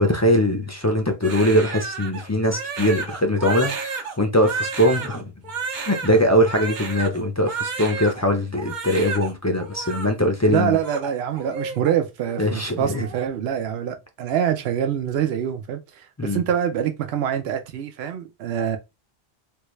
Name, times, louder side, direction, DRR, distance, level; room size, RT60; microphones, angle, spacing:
voice 1, 0.0-5.3 5.8-10.8 12.4-13.0 16.2-16.4, equal, 25° left, 0.4 m, -21 dB
Crying sobbing, 1.2-8.2 8.5-9.3 9.6-10.1 10.6-11.9 12.2-12.4 12.8-13.3, right 5 dB, 50° right, 0.8 m, -32 dB
voice 2, 10.5-18.8, right 9 dB, 85° right, 0.8 m, -25 dB
3.5 x 2.3 x 3.1 m
omnidirectional pair, 1.0 m